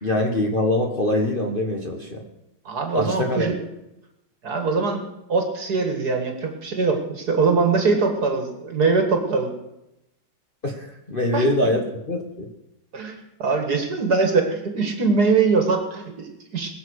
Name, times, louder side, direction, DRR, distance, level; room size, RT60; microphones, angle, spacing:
voice 1, 0.0-2.2 2.9-3.5 10.6-12.5, left 1 dB, 30° left, 0 dB, 1.3 m, -23 dB
voice 2, 2.7-3.6 4.4-5.0 5.3-9.5 11.3-11.5 12.9-16.7, right 4 dB, 50° right, 4 dB, 2.2 m, -22 dB
21.0 x 7.2 x 6.5 m, 0.90 s
omnidirectional pair, 2.3 m